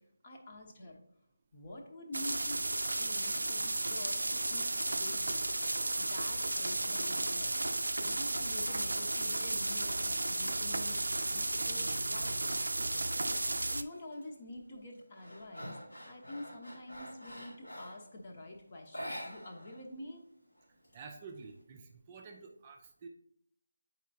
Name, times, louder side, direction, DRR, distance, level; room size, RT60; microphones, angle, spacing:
voice 1, 0.2-1.0 1.5-5.6 6.0-7.5 8.0-15.7 16.0-20.2, left 1 dB, 30° left, 1 dB, 1.0 m, -48 dB
sound 1, 2.1-13.8, right 2 dB, 80° right, 0.4 m, -33 dB
sound 2, 3.9-11.4, left 1 dB, 60° left, 1.2 m, -57 dB
sound 3, 13.9-14.3 14.7-18.1 18.8-19.8 20.1-20.2 20.6-21.5, equal, 85° left, 2.3 m, -46 dB
voice 2, 20.7-23.1, right 4 dB, 25° right, 3 dB, 0.5 m, -50 dB
8.2 x 4.3 x 2.7 m, 0.75 s
figure-of-eight pair, 160°, 0 cm